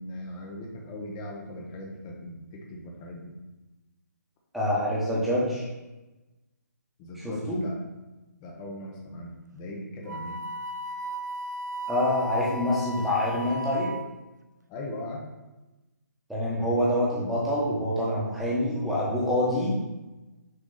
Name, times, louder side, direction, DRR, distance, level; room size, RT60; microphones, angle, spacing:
voice 1, 0.0-3.3 7.0-7.8 8.4-10.4 14.7-15.2, left 1 dB, 20° left, 0 dB, 1.0 m, -39 dB
voice 2, 4.5-5.6 7.2-7.6 11.9-13.9 16.3-19.8, left 1 dB, ahead, -8 dB, 1.4 m, -26 dB
Wind instrument woodwind instrument, 10.1-14.2, equal, 70° right, 0.5 m, -36 dB
6.5 x 3.6 x 4.1 m, 1.1 s
figure-of-eight pair, 150°, 10 cm